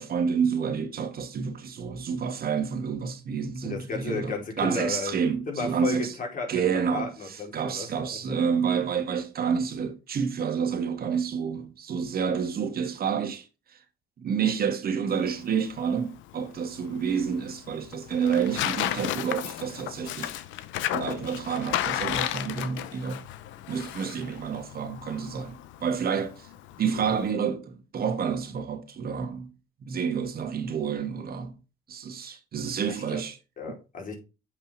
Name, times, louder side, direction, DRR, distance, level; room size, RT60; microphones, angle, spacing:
voice 1, 0.0-6.1 6.5-13.5 14.2-20.3 20.9-23.2 23.7-26.5 26.8-29.5 29.8-31.5 31.9-33.4, right 6 dB, 50° right, 2.0 m, -29 dB
voice 2, 3.6-6.6 6.9-8.2 26.9-27.2 32.9-33.2 33.6-34.1, left 4 dB, 40° left, 4.6 m, -34 dB
Tearing, 15.1-27.3, left 13 dB, 75° left, 0.9 m, -34 dB
8.4 x 5.5 x 4.3 m
supercardioid pair, 85°, 20 cm